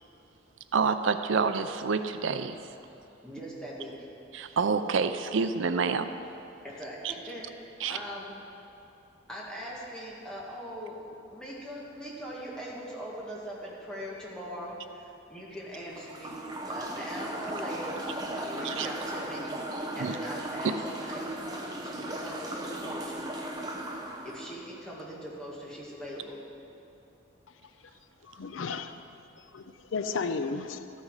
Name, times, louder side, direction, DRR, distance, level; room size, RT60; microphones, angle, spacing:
voice 1, 0.7-2.6 4.3-6.1 7.8-8.0 18.6-18.9 20.0-20.1, right 5 dB, 75° right, 0.5 m, -27 dB
voice 2, 3.2-4.1 6.6-7.5 7.9-8.3 9.3-11.0 11.3-23.4 24.2-26.4, equal, 5° left, 1.8 m, -41 dB
sound 1, 15.9-24.6, right 1 dB, 20° right, 0.8 m, -37 dB
voice 3, 28.2-28.9 29.5-30.8, left 4 dB, 80° left, 0.5 m, -33 dB
13.5 x 8.4 x 4.9 m
head